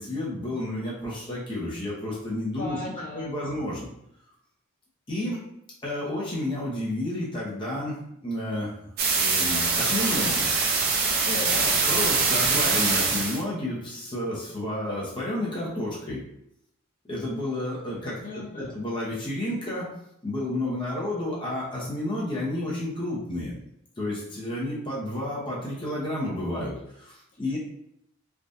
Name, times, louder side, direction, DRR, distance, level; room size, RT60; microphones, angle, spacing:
voice 1, 0.0-2.8 3.1-3.9 5.1-5.4 5.8-8.0 8.2-8.7 9.2-10.5 11.9-16.2 17.0-19.9 20.2-23.5 24.0-27.6, left 1 dB, 25° left, -7 dB, 0.8 m, -31 dB
voice 2, 2.6-3.6 11.3-11.8 18.2-18.8, left 3 dB, 75° left, -6 dB, 0.7 m, -36 dB
sound 1, 9.0-13.4, right 4 dB, 50° right, 0.5 m, -23 dB
3.4 x 2.4 x 2.6 m, 0.76 s
head